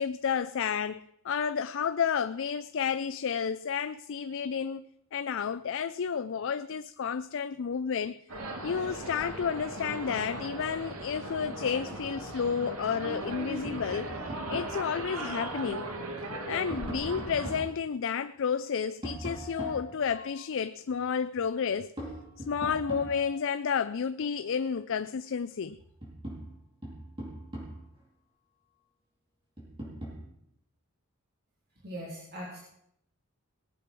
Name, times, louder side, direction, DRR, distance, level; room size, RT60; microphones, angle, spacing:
voice 1, 0.0-8.2 8.6-14.1 14.5-15.8 16.5-21.9 22.5-25.8, left 6 dB, 60° left, 0.4 m, -31 dB
sound 1, 8.3-17.6, right 2 dB, 85° right, 2.3 m, -38 dB
Tap, 13.6-14.8 16.2-17.7 19.0-20.5 22.0-23.5 25.3-25.4 25.8-28.0 29.6-30.2, right 1 dB, 25° right, 4.6 m, -41 dB
voice 2, 31.8-32.6, equal, 45° right, 3.3 m, -40 dB
19.0 x 8.6 x 6.1 m
head